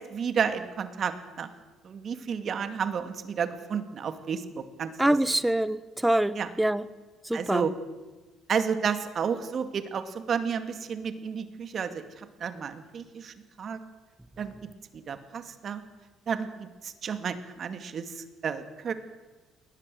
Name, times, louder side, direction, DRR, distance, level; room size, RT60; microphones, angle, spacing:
voice 1, 0.1-1.5 1.8-4.4 4.8-5.1 6.4-6.5 7.3-7.7 8.5-13.8 14.4-14.5 14.9-15.8 16.3-18.9, right 6 dB, 50° right, 9 dB, 2.3 m, -31 dB
voice 2, 5.0-6.8 7.2-7.7, right 1 dB, 5° right, 16 dB, 1.1 m, -25 dB
21.0 x 18.5 x 7.8 m, 1.2 s
supercardioid pair, 70°, 0 cm